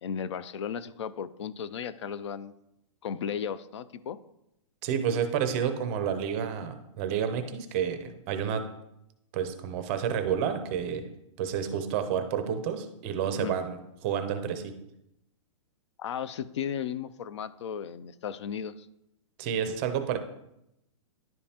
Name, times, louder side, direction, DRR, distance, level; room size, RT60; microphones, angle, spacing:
voice 1, 0.0-2.5 3.0-4.2 13.3-13.5 16.0-18.8, left 8 dB, 60° left, 15 dB, 0.4 m, -35 dB
voice 2, 4.8-8.6 9.3-11.0 11.4-14.7 19.4-20.2, right 8 dB, 25° right, 8 dB, 0.5 m, -30 dB
10.5 x 5.2 x 2.8 m, 0.84 s
hypercardioid pair, 165°, 17 cm